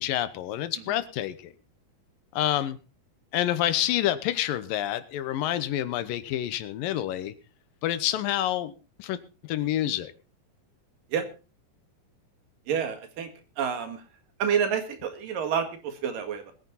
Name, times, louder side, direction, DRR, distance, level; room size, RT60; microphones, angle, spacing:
voice 1, 0.0-1.5 2.3-2.8 3.3-7.3 7.8-10.1, left 12 dB, 85° left, 13 dB, 2.7 m, -28 dB
voice 2, 12.7-13.3 13.6-14.0 14.4-16.5, right 7 dB, 80° right, 7 dB, 3.5 m, -28 dB
21.0 x 9.5 x 4.1 m, 0.33 s
omnidirectional pair, 3.9 m